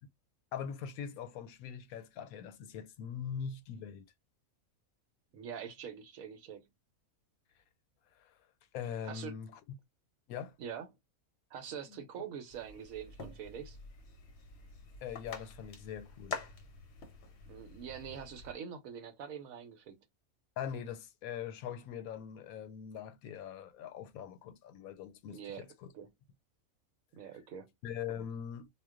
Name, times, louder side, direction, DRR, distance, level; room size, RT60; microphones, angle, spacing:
voice 1, 0.5-4.1 8.2-8.3 8.7-9.6 10.3-10.6 11.9-12.0 15.0-16.4 20.6-25.9 27.8-28.7, left 8 dB, 85° left, 1.0 m, -42 dB
voice 2, 5.3-6.7 9.0-9.4 10.6-10.9 11.5-13.8 17.5-20.0 25.3-25.7 25.9-26.1 27.1-27.7, right 8 dB, 75° right, 1.1 m, -44 dB
sound 1, 12.5-18.5, left 5 dB, 60° left, 0.9 m, -47 dB
2.4 x 2.2 x 3.5 m
omnidirectional pair, 1.5 m